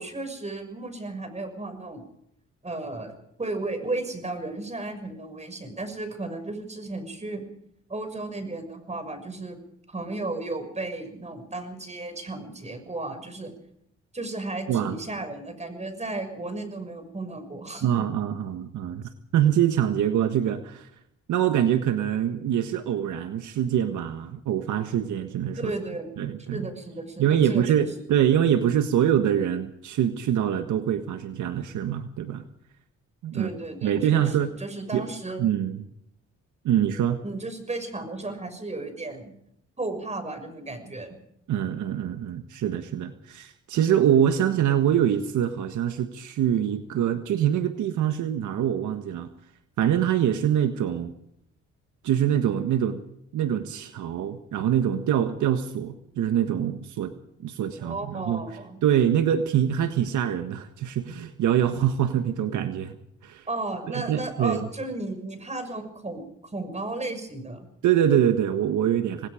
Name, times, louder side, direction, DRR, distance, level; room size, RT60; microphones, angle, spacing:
voice 1, 0.0-2.0 2.6-7.4 7.9-9.6 9.9-13.5 14.1-18.0 25.6-26.1 26.5-27.9 33.3-35.5 37.2-39.3 39.8-41.2 57.8-58.8 63.5-67.7, right 2 dB, 20° right, 8 dB, 6.3 m, -34 dB
voice 2, 17.8-19.0 19.3-20.9 21.3-25.7 26.2-26.7 27.2-32.4 33.2-33.5 33.8-34.5 34.9-35.1 35.4-35.8 36.6-37.2 41.5-49.3 49.8-51.1 52.0-53.0 53.3-57.1 57.4-58.4 58.8-62.9 63.2-63.5 63.9-64.6 67.8-69.3, right 10 dB, 75° right, 8 dB, 1.6 m, -24 dB
27.5 x 19.5 x 5.1 m, 0.74 s
cardioid pair, 90°, 30 cm